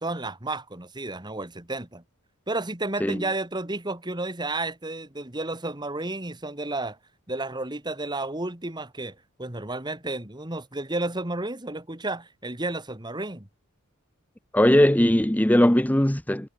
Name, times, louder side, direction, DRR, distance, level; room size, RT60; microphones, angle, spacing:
voice 1, 0.0-2.0 2.5-7.0 7.3-13.5, right 2 dB, 20° right, 2.2 m, -32 dB
voice 2, 14.5-16.5, left 1 dB, 5° left, 0.8 m, -19 dB
head